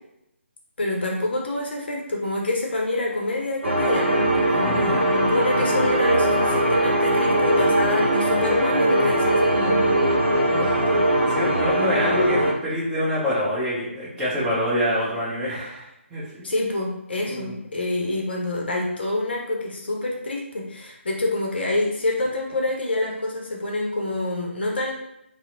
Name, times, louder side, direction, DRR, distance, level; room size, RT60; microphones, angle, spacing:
voice 1, 0.8-10.2 10.5-11.0 16.4-24.9, left 2 dB, 50° left, -1 dB, 0.6 m, -27 dB
sound 1, 3.6-12.5, right 1 dB, 65° right, 0.8 m, -21 dB
voice 2, 4.6-5.0 11.3-15.8 16.1-16.5 17.2-17.5, equal, 10° right, -9 dB, 0.7 m, -25 dB
2.8 x 2.0 x 2.5 m, 0.84 s
figure-of-eight pair, 150°, 7 cm